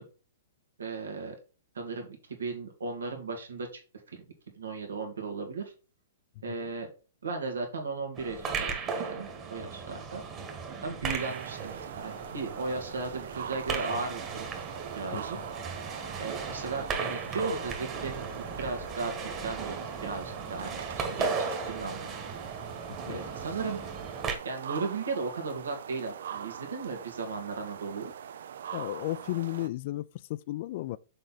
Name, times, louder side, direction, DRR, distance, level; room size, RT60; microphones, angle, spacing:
voice 1, 0.8-1.4 1.8-3.7 4.6-5.7 6.4-6.9 7.2-10.2 10.8-14.5 15.0-15.4 16.2-19.7 20.0-22.1 23.1-23.8 24.4-28.1, right 4 dB, 90° right, 1.9 m, -36 dB
sound 1, 8.1-24.4, right 5 dB, 25° right, 1.4 m, -36 dB
sound 2, 11.1-29.7, right 8 dB, 70° right, 0.5 m, -42 dB
voice 2, 15.1-15.4 23.1-23.2 28.7-31.0, left 16 dB, 50° left, 0.3 m, -34 dB
6.6 x 4.3 x 4.0 m
hypercardioid pair, 135°, 0 cm